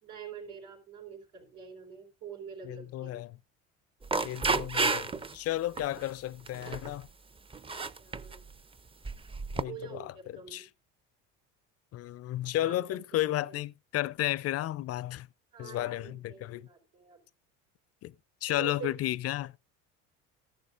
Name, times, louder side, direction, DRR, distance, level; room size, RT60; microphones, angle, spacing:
voice 1, 0.0-3.2 7.6-8.4 9.7-10.7 12.6-12.8 13.1-13.2 13.5-13.6 15.5-17.2 18.5-18.9, right 7 dB, 85° right, 4.4 m, -46 dB
voice 2, 2.6-3.3 4.2-7.1 9.5-10.7 11.9-15.3 15.6-16.7 18.0-18.1 18.4-19.5, left 14 dB, 45° left, 0.4 m, -33 dB
sound 1, 4.0-5.3 5.8-6.0 6.5-6.9 7.5-8.4 9.1-9.6, right 4 dB, 15° right, 0.5 m, -31 dB
14.0 x 11.0 x 2.5 m
supercardioid pair, 90°, 34 cm